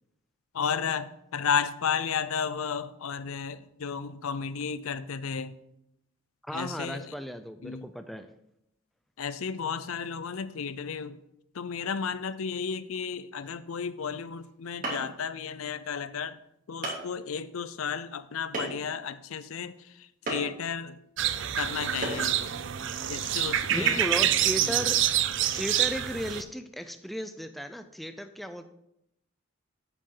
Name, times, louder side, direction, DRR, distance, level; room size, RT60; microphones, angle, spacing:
voice 1, 0.5-5.6 6.5-7.1 7.6-7.9 9.2-11.2 11.5-16.4 16.7-21.0 21.5-22.6 23.1-24.0 24.6-24.8, left 6 dB, 75° left, 15 dB, 0.5 m, -33 dB
voice 2, 6.4-8.3 23.7-25.0 25.5-28.6, equal, ahead, 8 dB, 0.4 m, -35 dB
sound 1, 14.4-14.5 14.8-15.2 16.0-16.1 16.8-17.1 18.5-18.9 20.3-20.5 22.0-22.3, right 2 dB, 40° right, 2.9 m, -32 dB
sound 2, 21.2-26.4, right 11 dB, 55° right, 0.5 m, -27 dB
9.2 x 8.4 x 3.9 m, 0.81 s
head